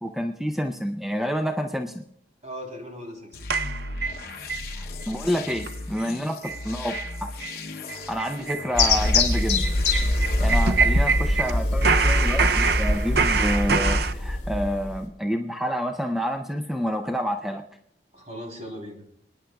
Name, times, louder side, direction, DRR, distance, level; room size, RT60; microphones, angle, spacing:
voice 1, 0.0-2.0 4.7-7.3 8.1-9.7 10.4-17.7, equal, ahead, 5 dB, 0.5 m, -28 dB
voice 2, 2.4-3.4 10.1-10.4 18.1-19.0, equal, 40° right, 1 dB, 3.4 m, -39 dB
sound 1, 3.3-10.7, left 3 dB, 55° left, 0.8 m, -37 dB
sound 2, 3.5-4.6 5.0-5.1 5.5-5.7 6.0-6.1 6.4-6.6 6.9-7.1 7.4-7.5 7.9-11.5 11.8-14.1, right 5 dB, 65° right, 0.5 m, -25 dB
sound 3, 8.8-15.1, left 2 dB, 35° left, 3.1 m, -23 dB
29.0 x 10.0 x 2.3 m, 0.70 s
head